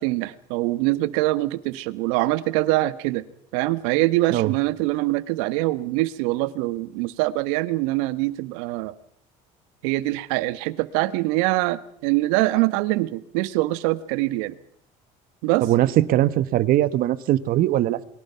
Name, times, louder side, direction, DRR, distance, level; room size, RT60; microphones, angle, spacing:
voice 1, 0.0-3.2 3.5-8.9 9.8-14.6 15.4-15.7, right 18 dB, 85° right, 1.5 m, -24 dB
voice 2, 15.6-18.0, right 14 dB, 65° right, 1.5 m, -20 dB
28.0 x 22.5 x 5.8 m
supercardioid pair, 90°, 16 cm